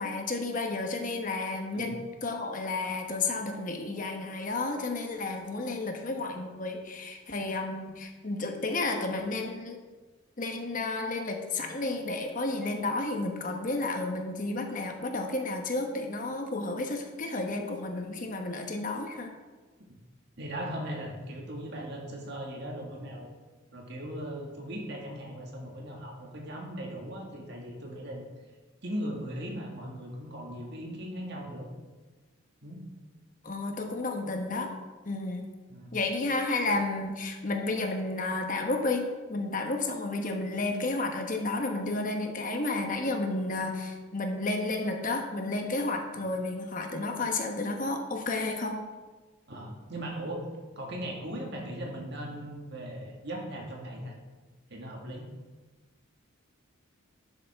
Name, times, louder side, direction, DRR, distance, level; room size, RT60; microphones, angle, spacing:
voice 1, 0.0-9.8 10.4-19.3 33.4-34.7 35.0-35.5 35.9-48.8, left 2 dB, 40° left, 3 dB, 1.1 m, -32 dB
voice 2, 20.4-23.3 23.7-28.2 28.8-31.7 32.6-32.8 35.7-35.9 49.5-50.4 50.8-54.1 54.7-55.2, right 1 dB, 55° right, 0 dB, 1.9 m, -38 dB
11.5 x 7.1 x 3.5 m, 1.3 s
head